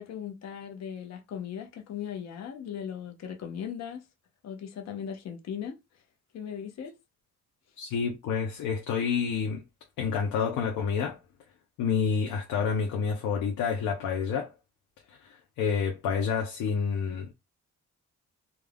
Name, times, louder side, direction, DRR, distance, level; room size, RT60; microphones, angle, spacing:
voice 1, 0.0-4.0 4.4-5.8 6.3-7.0, left 8 dB, 60° left, 0.7 m, -38 dB
voice 2, 7.8-9.6 10.0-11.2 11.8-14.5 15.1-17.3, left 6 dB, 90° left, 0.7 m, -29 dB
2.3 x 2.3 x 3.3 m
cardioid pair, 90°, 30 cm